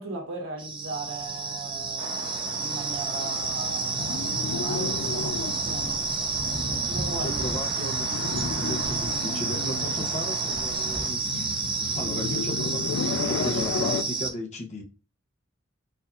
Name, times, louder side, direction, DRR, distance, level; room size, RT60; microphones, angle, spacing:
voice 1, 0.0-6.1 6.6-7.4, right 2 dB, 85° right, 1.3 m, -38 dB
sound 1, 0.6-14.3, right 4 dB, 25° right, 0.6 m, -30 dB
sound 2, 2.0-11.1, right 2 dB, 55° right, 1.4 m, -38 dB
sound 3, 3.4-14.0, left 5 dB, 70° left, 0.4 m, -34 dB
voice 2, 7.2-8.1 8.5-11.5 11.9-14.8, left 1 dB, 35° left, 0.8 m, -35 dB
4.3 x 2.6 x 2.6 m
head